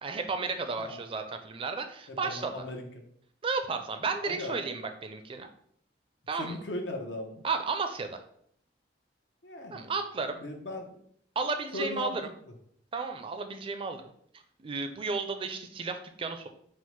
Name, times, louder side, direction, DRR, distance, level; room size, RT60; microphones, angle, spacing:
voice 1, 0.0-2.5 3.4-5.5 6.3-6.6 7.4-8.2 9.7-10.4 11.4-12.2 12.9-14.1 14.6-16.5, right 4 dB, 30° right, 7 dB, 0.4 m, -33 dB
voice 2, 2.1-2.8 4.2-4.6 6.4-7.4 9.4-9.9 10.4-11.0 11.7-12.2, left 1 dB, 85° left, 3 dB, 0.8 m, -38 dB
4.3 x 2.1 x 4.5 m, 0.66 s
head